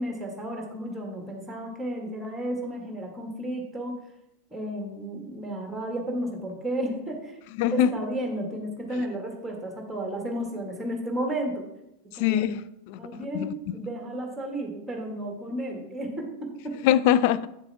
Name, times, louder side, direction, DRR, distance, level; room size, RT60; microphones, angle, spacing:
voice 1, 0.0-4.0 4.5-7.4 7.7-11.7 12.1-12.5 13.0-16.8, right 1 dB, 5° right, 1 dB, 1.9 m, -33 dB
voice 2, 7.6-7.9 12.2-13.0 13.3-13.7 16.8-17.5, left 11 dB, 45° left, 14 dB, 0.4 m, -23 dB
9.2 x 6.8 x 3.6 m, 0.85 s
figure-of-eight pair, 90°, 0 cm